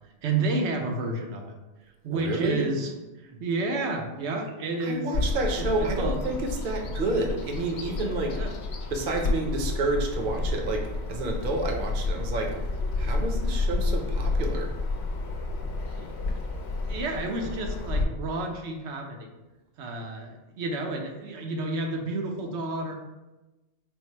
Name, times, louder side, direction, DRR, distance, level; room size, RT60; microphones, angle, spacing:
voice 1, 0.2-1.6 2.0-2.9 3.2-5.1 5.6-6.2 8.3-8.5 15.9-16.1 16.9-19.3 19.8-22.9, right 2 dB, 85° right, 2 dB, 0.9 m, -30 dB
voice 2, 2.1-2.7 4.8-8.4 8.9-12.6 13.0-14.7, right 2 dB, 55° right, 2 dB, 0.7 m, -29 dB
Bird vocalization bird call bird song, 5.1-18.0, left 3 dB, 75° left, 0.9 m, -30 dB
4.4 x 2.0 x 4.2 m, 1.1 s
omnidirectional pair, 1.1 m